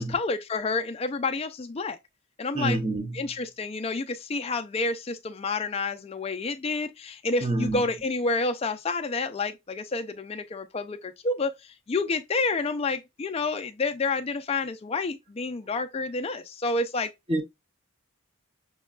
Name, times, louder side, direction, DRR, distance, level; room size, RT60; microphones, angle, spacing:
voice 1, 0.0-2.0 2.4-2.8 3.1-17.1, left 3 dB, 25° left, 0.3 m, -29 dB
voice 2, 2.5-3.3 7.4-7.8 17.3-17.4, right 2 dB, 25° right, 0.6 m, -27 dB
6.1 x 2.2 x 2.3 m
head